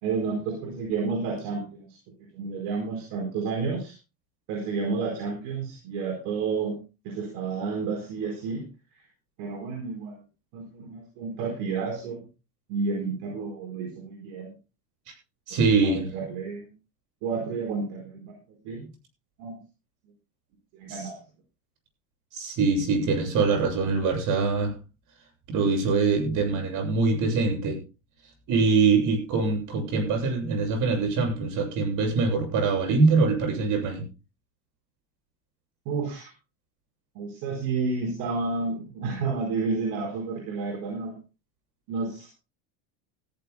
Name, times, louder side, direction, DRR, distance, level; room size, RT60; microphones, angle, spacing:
voice 1, 0.0-2.0 2.3-3.9 4.5-6.8 7.0-8.6 9.4-10.2 10.5-12.2 12.7-14.5 15.8-16.7 17.2-18.3 18.6-18.9 19.4-19.6 20.7-21.2 35.9-36.3 37.1-41.1 41.9-42.3, right 4 dB, 70° right, 2 dB, 4.5 m, -30 dB
voice 2, 15.5-16.0 20.9-21.1 22.3-24.7 25.5-27.8 28.5-34.0, right 4 dB, 55° right, 3 dB, 7.6 m, -23 dB
19.5 x 14.5 x 2.2 m, 0.31 s
supercardioid pair, 105°, 38 cm